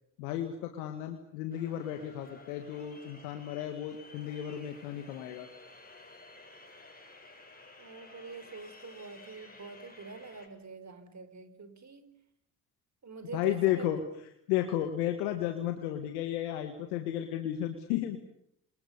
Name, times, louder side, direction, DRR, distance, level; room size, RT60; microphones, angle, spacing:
voice 1, 0.2-5.5 13.3-14.0 14.5-18.2, left 12 dB, 80° left, 6 dB, 1.9 m, -33 dB
sound 1, 1.5-10.5, left 2 dB, 20° left, 7.6 m, -53 dB
voice 2, 7.8-12.2 13.0-13.9, right 4 dB, 40° right, 11 dB, 4.3 m, -45 dB
27.5 x 27.5 x 6.9 m, 0.76 s
hypercardioid pair, 40°, 43 cm